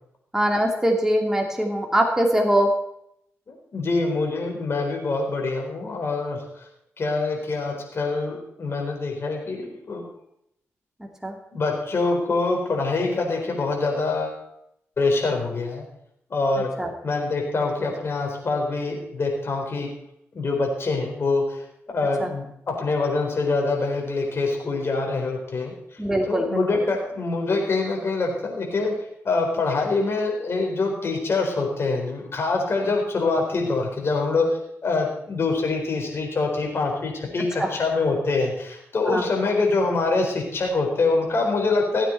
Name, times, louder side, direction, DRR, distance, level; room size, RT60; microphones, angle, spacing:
voice 1, 0.3-2.7 11.2-11.3 16.8-16.9 22.2-22.3 26.0-26.8 37.6-37.7 39.1-39.3, equal, 10° right, 1 dB, 2.4 m, -22 dB
voice 2, 3.5-6.4 7.0-10.0 11.5-14.4 15.0-15.8 16.3-16.7 17.0-19.9 20.3-21.6 21.9-25.7 26.2-28.9 29.2-34.5 34.8-42.0, left 3 dB, 50° left, 1 dB, 4.2 m, -25 dB
16.5 x 9.0 x 4.5 m, 0.75 s
cardioid pair, 70°, 5 cm